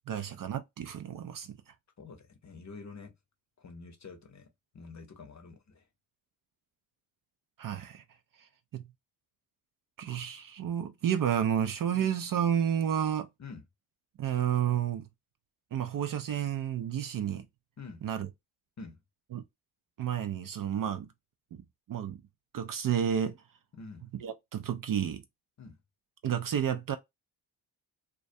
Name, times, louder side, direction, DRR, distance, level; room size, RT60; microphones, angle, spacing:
voice 1, 0.1-1.6 7.6-8.0 8.4-8.8 10.0-13.3 14.2-15.1 15.7-17.5 18.0-18.3 19.3-19.4 20.0-21.1 21.5-21.6 21.9-22.2 22.5-23.4 24.2-25.2 26.2-27.0, right 9 dB, 45° right, 0.4 m, -31 dB
voice 2, 2.0-3.1 3.6-4.5 4.7-5.9 11.9-12.1 13.4-13.6 17.8-18.0 18.8-19.0 23.7-24.1 25.6-25.8, left 4 dB, 35° left, 0.7 m, -47 dB
2.2 x 2.2 x 2.6 m
supercardioid pair, 45°, 49 cm